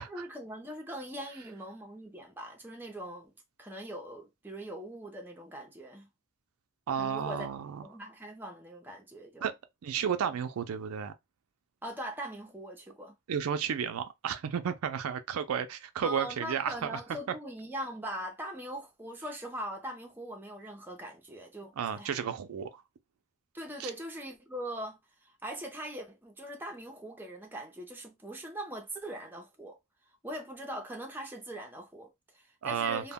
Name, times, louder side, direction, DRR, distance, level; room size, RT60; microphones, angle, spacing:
voice 1, 0.0-3.3 3.6-6.1 7.0-7.5 7.8-9.5 11.8-13.1 16.0-22.1 23.5-29.8 30.2-33.1, right 1 dB, 10° right, 0.5 m, -41 dB
voice 2, 6.9-7.8 9.4-9.5 9.8-11.1 13.3-17.0 21.8-22.8 23.8-23.9 32.6-33.1, right 7 dB, 80° right, 0.4 m, -32 dB
2.1 x 2.1 x 3.4 m
head